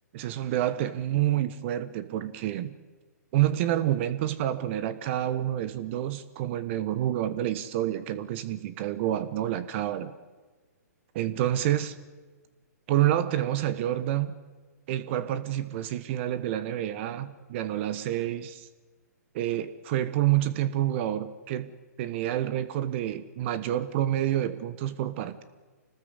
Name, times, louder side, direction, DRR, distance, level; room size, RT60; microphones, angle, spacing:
voice 1, 0.1-2.7 3.3-10.1 11.1-12.0 12.9-14.4 14.9-18.7 19.3-21.7 22.0-25.4, right 12 dB, 45° right, 13 dB, 1.3 m, -28 dB
26.5 x 19.5 x 8.2 m, 1.3 s
hypercardioid pair, 130°, 9 cm